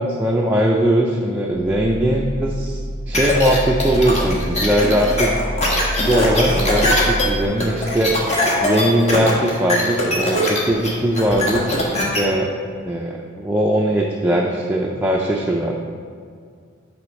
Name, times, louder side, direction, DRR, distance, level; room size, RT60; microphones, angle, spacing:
voice 1, 0.0-2.8 3.1-5.3 6.0-8.1 8.6-12.5 12.8-15.7, right 1 dB, 10° right, -1 dB, 0.4 m, -20 dB
sound 1, 1.5-7.4, equal, 75° left, 1.0 m, -27 dB
sound 2, 3.1-12.2, left 1 dB, 35° left, 1.3 m, -21 dB
9.6 x 3.5 x 5.1 m, 2.1 s
head